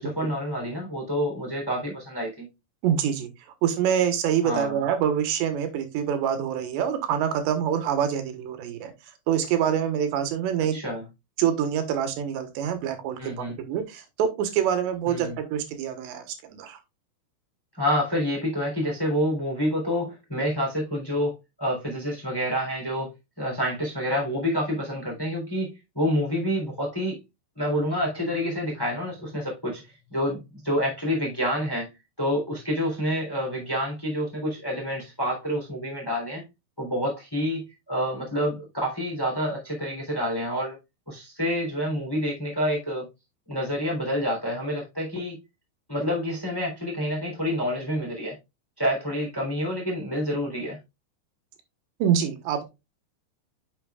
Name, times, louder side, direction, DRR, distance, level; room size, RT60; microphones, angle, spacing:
voice 1, 0.0-2.5 4.4-4.8 10.7-11.0 13.2-13.6 15.1-15.4 17.7-23.1 23.4-27.2 27.5-36.4 36.8-40.8 41.1-43.1 43.5-45.4 45.9-48.3 48.8-50.8, equal, 5° left, 2.6 m, -28 dB
voice 2, 2.8-3.3 3.6-8.9 9.3-10.8 11.4-16.8 52.0-52.6, right 9 dB, 80° right, 3.4 m, -26 dB
8.9 x 7.2 x 2.4 m
omnidirectional pair, 5.0 m